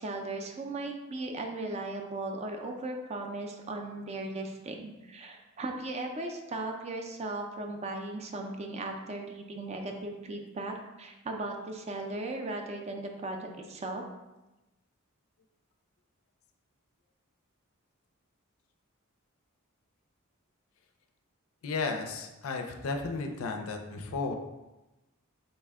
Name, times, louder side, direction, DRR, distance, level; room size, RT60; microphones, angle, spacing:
voice 1, 0.0-14.0, right 2 dB, 30° right, 3 dB, 0.4 m, -37 dB
voice 2, 21.6-24.3, left 4 dB, 70° left, 4 dB, 0.4 m, -34 dB
4.0 x 2.1 x 3.5 m, 1.0 s
head